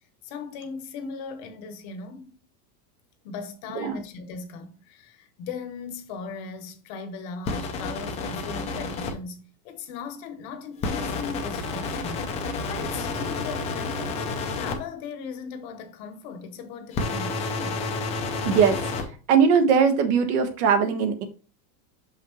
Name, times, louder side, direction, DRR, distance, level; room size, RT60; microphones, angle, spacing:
voice 1, 0.2-2.4 3.2-12.2 12.7-14.2 14.5-17.8, left 5 dB, 40° left, 0.9 m, -38 dB
sound 1, 7.5-9.1 10.8-14.8 16.9-19.0, left 3 dB, 15° left, 0.5 m, -30 dB
voice 2, 18.4-18.8 19.3-21.2, right 6 dB, 65° right, 1.4 m, -20 dB
6.3 x 5.5 x 3.0 m
supercardioid pair, 175°, 46 cm